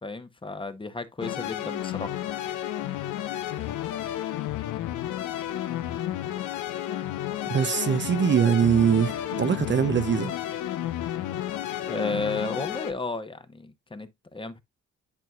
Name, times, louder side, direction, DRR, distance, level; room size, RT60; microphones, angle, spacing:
voice 1, 0.0-2.2 11.8-14.6, left 3 dB, 15° left, 0.9 m, -33 dB
sound 1, 1.2-12.9, left 12 dB, 85° left, 0.8 m, -32 dB
voice 2, 7.5-10.4, right 8 dB, 40° right, 0.6 m, -22 dB
10.5 x 4.5 x 2.4 m
cardioid pair, 90°, 30 cm